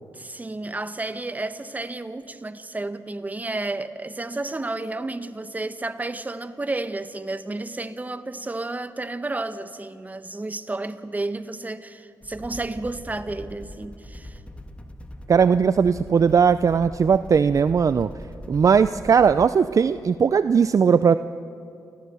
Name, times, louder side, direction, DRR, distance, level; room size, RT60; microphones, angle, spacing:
voice 1, 0.1-14.4, right 2 dB, 20° right, 1.1 m, -31 dB
sound 1, 12.2-19.5, equal, 15° left, 1.6 m, -41 dB
voice 2, 15.3-18.1 18.5-21.2, right 6 dB, 45° right, 0.4 m, -18 dB
29.5 x 14.5 x 6.9 m
cardioid pair, 70°, 8 cm